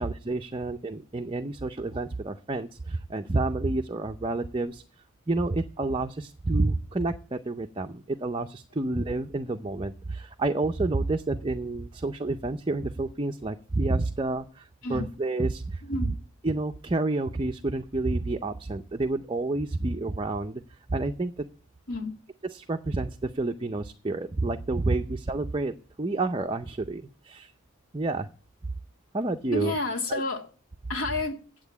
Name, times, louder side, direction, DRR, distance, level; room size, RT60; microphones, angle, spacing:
voice 1, 0.0-4.8 5.3-15.8 16.4-20.6 20.9-21.4 22.5-27.5 27.9-28.3 29.1-29.7 30.1-30.2, right 2 dB, 25° right, 0.5 m, -29 dB
voice 2, 15.8-16.2 21.9-22.1 29.5-30.5 30.9-31.4, left 2 dB, 80° left, 2.5 m, -30 dB
8.9 x 8.0 x 8.3 m
head